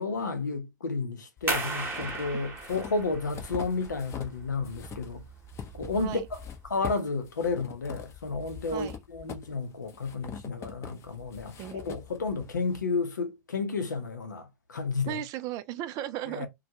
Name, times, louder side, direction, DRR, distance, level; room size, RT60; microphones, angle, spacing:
voice 1, 0.0-5.2 5.7-15.2 16.3-16.5, left 4 dB, 80° left, 0.7 m, -32 dB
sound 1, 1.4-4.4 4.6-12.8, left 8 dB, 30° left, 0.5 m, -44 dB
sound 2, 1.5-6.8, right 3 dB, 20° right, 0.9 m, -37 dB
voice 2, 15.1-16.5, right 12 dB, 40° right, 0.3 m, -35 dB
2.2 x 2.2 x 2.8 m
figure-of-eight pair, 90°, 10 cm